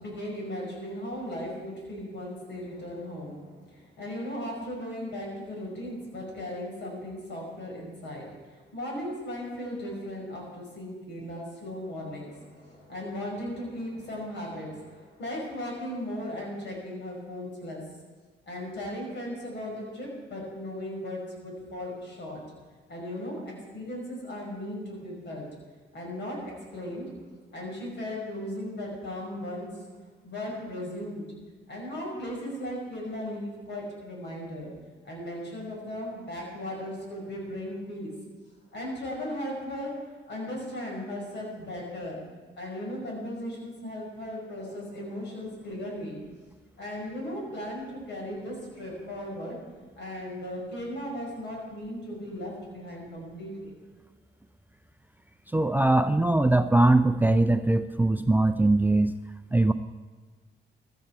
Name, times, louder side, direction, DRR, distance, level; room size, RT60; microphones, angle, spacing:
voice 1, 0.0-8.3 8.7-17.8 18.5-22.4 22.9-25.5 25.9-27.1 27.5-29.8 30.2-31.2 31.7-34.7 35.0-38.1 38.7-42.2 42.6-46.2 46.8-49.6 50.0-53.7, left 1 dB, 60° left, -2 dB, 5.7 m, -37 dB
voice 2, 55.5-59.1 59.5-59.7, right 2 dB, 10° right, 11 dB, 0.4 m, -21 dB
15.0 x 13.0 x 4.7 m, 1.4 s
cardioid pair, 90°, 20 cm